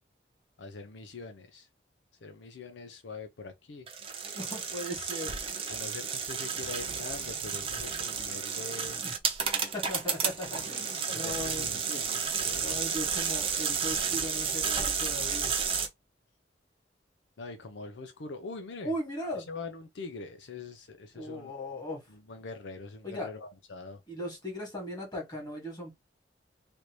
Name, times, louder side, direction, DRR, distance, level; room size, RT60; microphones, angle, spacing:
voice 1, 0.6-1.7 2.2-3.9 5.7-9.0 11.1-12.8 17.4-18.9 19.3-21.5 22.1-24.0, left 3 dB, 80° left, 0.6 m, -43 dB
sound 1, 3.9-15.9, right 6 dB, 35° right, 0.8 m, -32 dB
voice 2, 4.3-5.4 9.0-9.1 9.7-11.7 12.6-15.5 18.8-19.5 21.1-22.1 23.0-23.3 24.1-25.9, equal, 25° left, 1.8 m, -38 dB
3.3 x 2.6 x 3.0 m
head